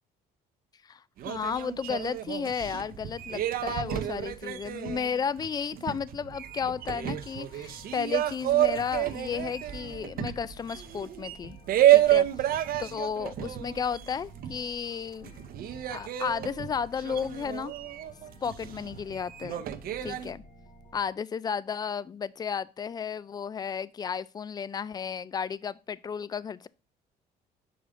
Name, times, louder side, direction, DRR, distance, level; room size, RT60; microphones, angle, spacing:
voice 1, 0.8-11.6 11.9-12.5 12.8-15.5 15.9-17.7 18.4-19.6 20.0-20.4 20.9-26.7, left 7 dB, 25° left, 0.3 m, -33 dB
sound 1, 1.2-14.9 15.2-20.3, right 13 dB, 60° right, 0.7 m, -29 dB
sound 2, 6.4-21.0, left 2 dB, 50° left, 2.2 m, -54 dB
6.2 x 5.0 x 3.7 m
cardioid pair, 110°, 17 cm